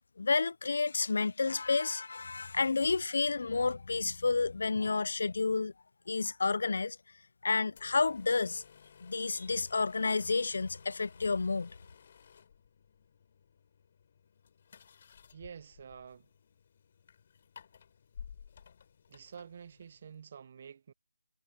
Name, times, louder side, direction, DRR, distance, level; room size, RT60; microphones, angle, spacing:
voice 1, 0.2-5.7 6.1-7.0 7.4-8.6 9.0-11.7, left 4 dB, 50° left, 0.3 m, -30 dB
sound 1, 7.7-20.2, left 7 dB, 30° left, 4.9 m, -56 dB
voice 2, 15.3-16.3 19.1-20.9, right 7 dB, 30° right, 0.5 m, -49 dB
figure-of-eight pair, 170°, 0 cm